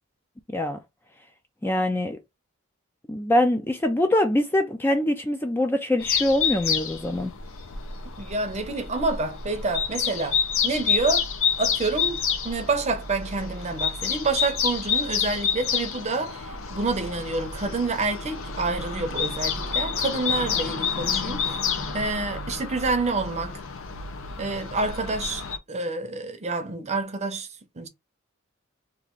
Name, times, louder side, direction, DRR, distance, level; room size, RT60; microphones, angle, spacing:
voice 1, 1.6-2.2 3.1-7.3, left 1 dB, 10° left, 0.4 m, -23 dB
sound 1, 6.0-25.6, left 6 dB, 65° left, 0.7 m, -29 dB
voice 2, 8.2-11.3 11.6-12.2 12.4-21.6 21.9-23.6 24.4-27.5 27.8-27.9, right 3 dB, 30° right, 0.7 m, -28 dB
3.0 x 2.5 x 3.7 m
head